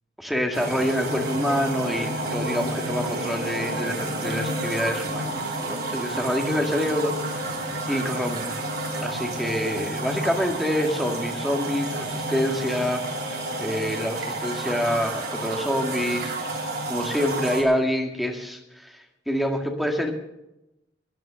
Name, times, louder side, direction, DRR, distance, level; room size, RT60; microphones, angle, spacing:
voice 1, 0.2-7.4 7.9-8.6 9.0-13.0 13.6-16.3 16.9-19.0 19.3-20.1, equal, ahead, 2 dB, 1.9 m, -26 dB
sound 1, 0.5-17.6, right 1 dB, 60° right, 3.1 m, -30 dB
13.5 x 10.5 x 7.4 m, 0.90 s
head